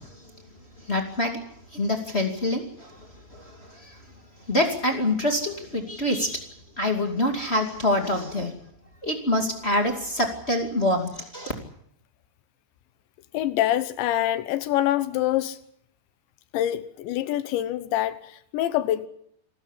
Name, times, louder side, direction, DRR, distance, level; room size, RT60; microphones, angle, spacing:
voice 1, 0.8-1.4 1.7-4.0 4.5-6.5 6.8-8.5 9.0-11.5, left 1 dB, 25° left, 1.6 m, -26 dB
voice 2, 13.3-15.6 16.5-19.1, left 13 dB, 85° left, 3.3 m, -25 dB
26.5 x 14.0 x 10.0 m
omnidirectional pair, 5.1 m